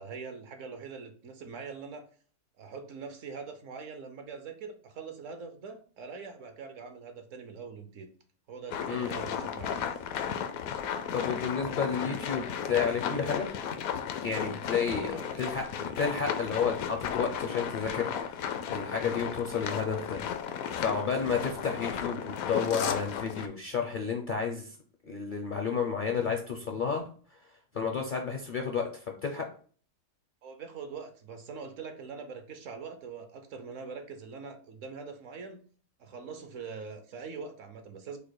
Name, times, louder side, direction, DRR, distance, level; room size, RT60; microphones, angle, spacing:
voice 1, 0.0-2.1 2.6-8.1 8.5-9.8 14.7-15.4 30.4-35.6 36.0-38.2, right 5 dB, 65° right, 7 dB, 1.0 m, -43 dB
sound 1, 8.7-23.5, left 8 dB, 75° left, 1.0 m, -34 dB
voice 2, 11.1-13.5 14.2-20.2 20.8-24.7 25.0-27.1 27.7-29.5, left 6 dB, 50° left, 2 dB, 0.6 m, -31 dB
5.1 x 2.2 x 4.7 m, 0.43 s
omnidirectional pair, 1.5 m